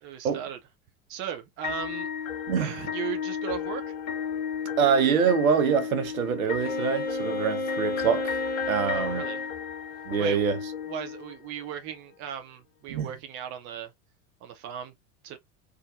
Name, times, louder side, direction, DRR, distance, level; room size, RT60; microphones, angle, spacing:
voice 1, 0.0-0.6 1.1-2.1 2.6-3.9 8.9-9.4 10.2-10.4 10.9-13.9 14.4-14.9 15.2-15.4, right 9 dB, 30° right, 0.6 m, -37 dB
sound 1, 1.6-11.7, left 7 dB, 65° left, 0.8 m, -34 dB
voice 2, 4.8-8.4 8.7-9.2 10.1-10.6 12.9-13.1, right 7 dB, 65° right, 1.0 m, -25 dB
Wind instrument woodwind instrument, 6.6-9.5, left 2 dB, 20° left, 1.2 m, -31 dB
3.6 x 2.5 x 2.4 m
figure-of-eight pair, 80°, 45 cm